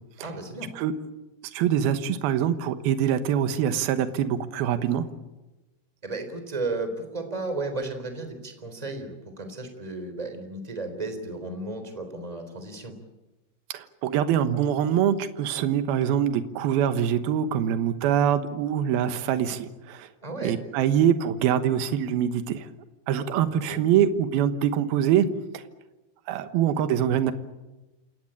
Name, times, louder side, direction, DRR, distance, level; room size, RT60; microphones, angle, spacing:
voice 1, 0.2-0.7 6.0-12.9 20.2-20.5 23.5-23.8, right 2 dB, 10° right, 7 dB, 3.4 m, -34 dB
voice 2, 1.5-5.1 13.7-20.1 20.4-22.7 23.1-25.3 25.5-25.6 26.3-27.3, right 9 dB, 75° right, 10 dB, 3.0 m, -24 dB
28.5 x 17.5 x 8.9 m, 1.1 s
omnidirectional pair, 4.6 m